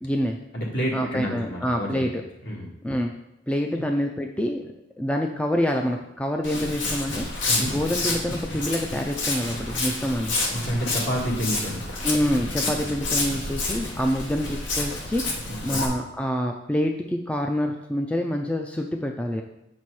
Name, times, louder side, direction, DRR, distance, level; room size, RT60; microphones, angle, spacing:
voice 1, 0.0-0.4 0.9-2.2 2.8-3.1 3.5-4.7 5.0-7.3 7.6-10.3 12.0-15.2 15.6-19.4, equal, 5° left, 2 dB, 0.4 m, -26 dB
voice 2, 0.5-2.0 2.4-2.7 3.8-3.9 7.5-7.7 10.5-11.8 12.6-12.8 15.5-15.8, equal, 60° left, -2 dB, 1.7 m, -29 dB
Walk footsteps, 6.4-15.9, left 2 dB, 80° left, 1.2 m, -29 dB
6.8 x 4.3 x 4.7 m, 0.87 s
head